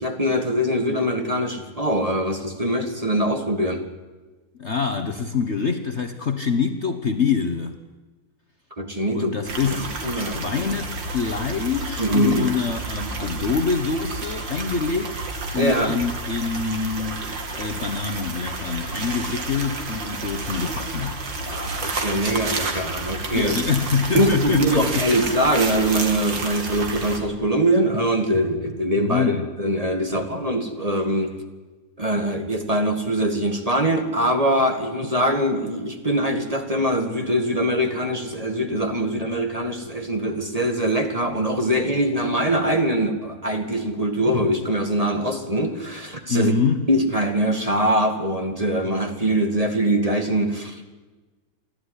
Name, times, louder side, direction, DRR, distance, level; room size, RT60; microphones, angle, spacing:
voice 1, 0.0-3.9 8.8-9.3 9.6-10.5 12.0-12.5 15.5-16.0 21.5-23.5 24.1-31.3 32.0-46.5 46.9-50.9, right 1 dB, 20° right, 5 dB, 2.1 m, -23 dB
voice 2, 4.6-7.7 9.1-15.1 15.5-17.3 17.6-21.2 23.3-25.1 29.1-29.5 46.3-46.8, left 5 dB, 45° left, 7 dB, 1.3 m, -25 dB
sound 1, 9.5-27.2, right 3 dB, 85° right, 3.1 m, -30 dB
29.0 x 12.0 x 9.9 m, 1.2 s
omnidirectional pair, 1.9 m